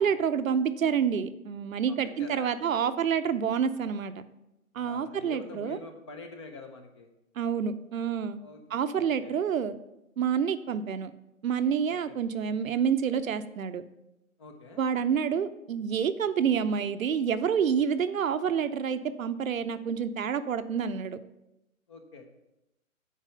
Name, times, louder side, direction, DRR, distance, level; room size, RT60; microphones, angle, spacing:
voice 1, 0.0-4.1 4.8-5.8 7.4-8.4 8.7-9.8 10.2-11.1 11.4-13.8 14.8-21.2, right 7 dB, 70° right, 11 dB, 0.7 m, -28 dB
voice 2, 1.9-2.5 4.8-7.1 8.4-8.6 9.0-9.4 11.9-12.2 14.4-14.8 21.9-22.3, left 3 dB, 20° left, 5 dB, 0.6 m, -46 dB
7.4 x 4.8 x 6.6 m, 0.90 s
hypercardioid pair, 145°, 42 cm